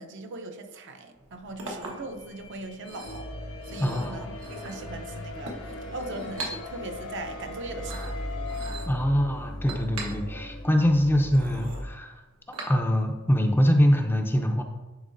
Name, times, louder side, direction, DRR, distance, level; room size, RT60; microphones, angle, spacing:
voice 1, 0.0-3.3 3.7-8.2, right 2 dB, 55° right, 6 dB, 0.6 m, -39 dB
Chink clink, 1.1-13.2, right 2 dB, 85° right, 1.2 m, -42 dB
sound 1, 1.6-8.7, left 3 dB, 85° left, 0.9 m, -42 dB
sound 2, 3.0-11.9, left 1 dB, 40° left, 0.7 m, -39 dB
voice 2, 3.8-4.3 8.9-12.2 12.7-14.6, equal, 10° left, 3 dB, 0.5 m, -23 dB
10.5 x 4.1 x 2.6 m, 1.2 s
head